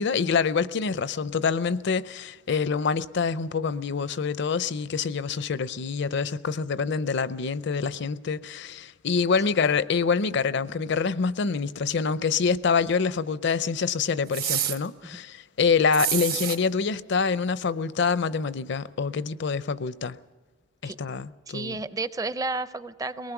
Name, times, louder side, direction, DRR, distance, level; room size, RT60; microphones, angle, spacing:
voice 1, 0.0-20.2 20.8-21.8, left 5 dB, 60° left, 0.5 m, -26 dB
sound 1, 14.3-14.8 15.9-16.6, right 11 dB, 50° right, 0.9 m, -27 dB
voice 2, 21.5-23.3, right 3 dB, 15° right, 0.5 m, -32 dB
22.5 x 19.5 x 6.0 m
head